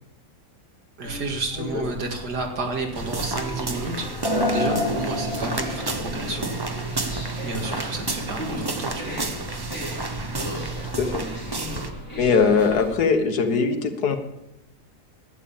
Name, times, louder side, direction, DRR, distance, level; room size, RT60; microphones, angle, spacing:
sound 1, 1.0-13.1, left 1 dB, 55° left, 3.2 m, -37 dB
voice 1, 1.0-4.1 4.5-6.5 7.4-9.2, right 3 dB, 85° right, 3 dB, 2.5 m, -31 dB
sound 2, 2.9-11.9, right 3 dB, 25° right, 0.6 m, -31 dB
sound 3, 4.2-7.4 7.8-7.9 9.0-9.1, left 1 dB, 15° left, 4.0 m, -28 dB
voice 2, 11.0-11.3 12.2-14.2, left 5 dB, 75° left, 6 dB, 1.8 m, -21 dB
12.0 x 8.8 x 7.2 m, 0.93 s
omnidirectional pair, 1.7 m